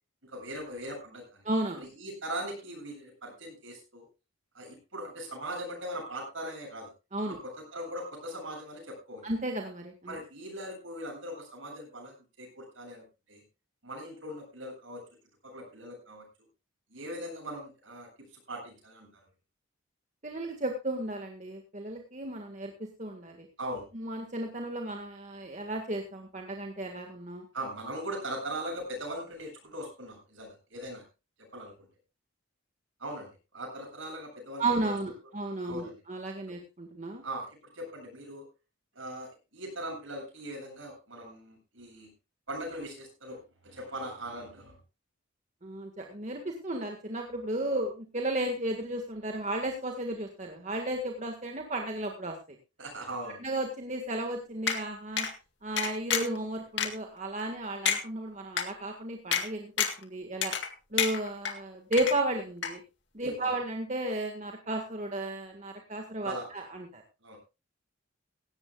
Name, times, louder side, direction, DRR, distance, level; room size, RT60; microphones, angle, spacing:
voice 1, 0.2-1.4 1.8-4.1 4.5-6.9 7.3-9.2 10.1-13.4 13.8-15.0 15.4-16.3 16.9-19.1 23.6-23.9 27.5-31.0 31.4-31.9 33.0-34.9 35.6-36.0 36.5-36.6 37.2-38.5 38.9-42.1 42.5-44.8 52.8-53.4 63.2-63.5 66.2-66.5 67.2-67.4, right 1 dB, 70° right, 2 dB, 7.8 m, -40 dB
voice 2, 1.4-1.9 7.1-7.4 9.2-10.2 20.2-23.5 23.9-27.4 34.6-37.2 45.6-52.6 53.4-55.3 55.6-60.5 60.9-62.8 63.1-67.0, right 1 dB, 35° right, 3 dB, 1.8 m, -34 dB
sound 1, 54.7-54.8 55.2-55.3 55.8-56.4 56.8-56.9 57.4-57.5 57.9-58.0 58.6-58.7 59.3-59.4 59.8-60.0 60.4-60.7 61.0-61.5 61.9-62.4 62.6-62.7, left 7 dB, 60° left, 2.1 m, -28 dB
17.5 x 16.0 x 2.4 m, 0.28 s
head